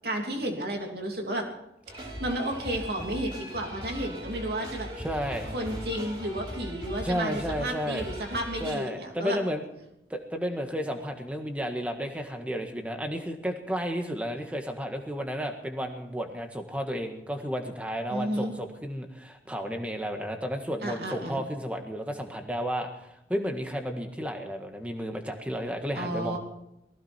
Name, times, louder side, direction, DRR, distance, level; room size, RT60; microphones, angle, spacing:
voice 1, 0.0-1.5 2.0-4.9 5.5-9.4 18.1-18.5 20.8-21.4 26.0-26.4, right 1 dB, 60° right, 1 dB, 3.2 m, -32 dB
sound 1, 1.9-8.8, equal, 30° right, 4.3 m, -39 dB
voice 2, 5.0-5.5 7.0-8.1 8.6-9.7 10.1-26.4, equal, 10° right, 4 dB, 1.6 m, -32 dB
19.5 x 16.0 x 4.5 m, 0.82 s
head